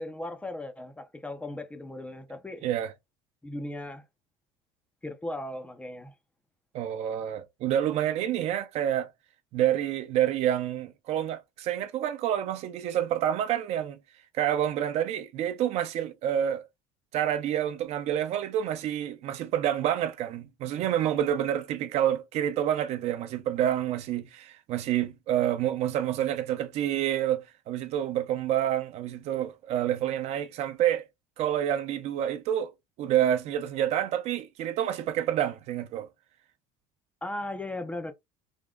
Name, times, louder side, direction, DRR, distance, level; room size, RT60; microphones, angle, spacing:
voice 1, 0.0-2.7 3.4-4.0 5.0-6.1 20.7-20.9 37.2-38.1, left 1 dB, 10° left, 0.4 m, -37 dB
voice 2, 6.7-9.1 9.5-14.0 14.3-16.7 17.1-31.1 31.4-32.7 33.0-36.1, right 11 dB, 50° right, 0.6 m, -28 dB
3.6 x 2.1 x 3.6 m
cardioid pair, 150°, 14 cm